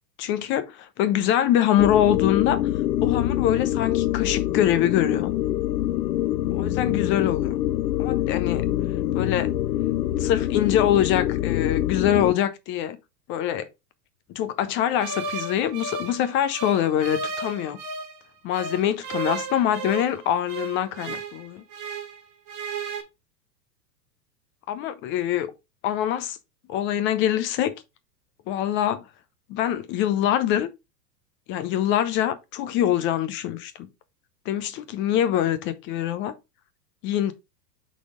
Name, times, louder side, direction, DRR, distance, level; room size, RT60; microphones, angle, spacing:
voice 1, 0.2-2.6 3.0-5.3 6.5-7.5 8.0-8.7 9.1-9.5 10.2-13.0 13.3-13.7 14.3-17.8 18.4-21.6 24.7-25.5 25.8-26.4 26.7-27.7 28.5-29.0 29.5-30.7 31.5-33.9 34.5-36.3 37.0-37.3, left 11 dB, 25° left, 0.4 m, -24 dB
sound 1, 1.8-12.4, left 13 dB, 80° left, 0.6 m, -25 dB
sound 2, 15.0-18.2 18.5-22.2 22.5-23.0, right 4 dB, 40° right, 1.9 m, -34 dB
5.9 x 4.1 x 4.9 m
hypercardioid pair, 105°, 50 cm